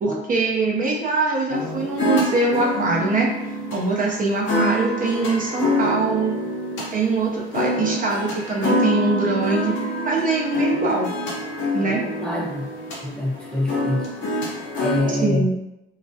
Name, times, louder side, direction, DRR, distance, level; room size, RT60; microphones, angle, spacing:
voice 1, 0.0-3.3 3.7-6.3 6.9-9.7 10.1-11.1 11.7-12.0 15.2-15.5, right 3 dB, 45° right, -2 dB, 0.5 m, -23 dB
sound 1, 1.5-15.0, equal, 75° left, 0.7 m, -26 dB
voice 2, 11.9-12.7 13.0-14.1 14.8-15.5, left 1 dB, 5° left, -3 dB, 0.5 m, -25 dB
2.2 x 2.0 x 2.6 m, 0.88 s
cardioid pair, 90°, 20 cm